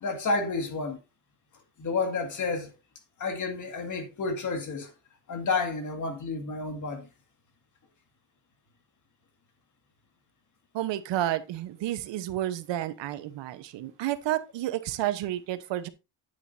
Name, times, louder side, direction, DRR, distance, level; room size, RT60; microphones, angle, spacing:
voice 1, 0.0-1.0 1.8-2.7 3.2-4.9 5.3-7.1, left 3 dB, 45° left, 2.1 m, -30 dB
voice 2, 10.7-15.9, right 13 dB, 75° right, 1.1 m, -31 dB
9.3 x 9.0 x 2.7 m
cardioid pair, 155°, 44 cm